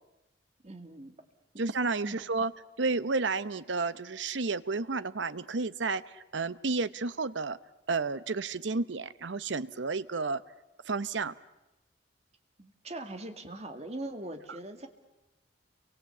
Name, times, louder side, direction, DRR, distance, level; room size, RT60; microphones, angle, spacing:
voice 1, 0.6-1.2 2.0-2.2 12.6-14.9, right 1 dB, 35° right, 7 dB, 2.3 m, -41 dB
voice 2, 1.6-2.5 2.8-6.0 6.3-7.6 7.9-10.4 10.9-11.3, right 3 dB, 75° right, 15 dB, 0.9 m, -31 dB
29.5 x 24.0 x 8.4 m, 0.98 s
head